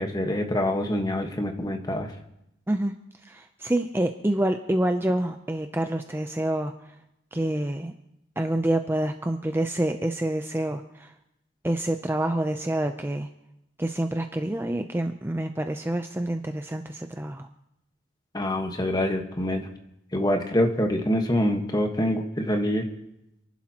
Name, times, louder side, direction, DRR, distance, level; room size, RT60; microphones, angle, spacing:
voice 1, 0.0-2.1 18.3-19.7 20.1-22.9, left 1 dB, 20° left, 4 dB, 1.3 m, -25 dB
voice 2, 3.2-6.7 7.3-7.9 8.4-11.1 11.6-13.3 13.8-17.5, right 1 dB, 10° right, 6 dB, 0.5 m, -27 dB
29.0 x 11.5 x 2.9 m, 0.84 s
head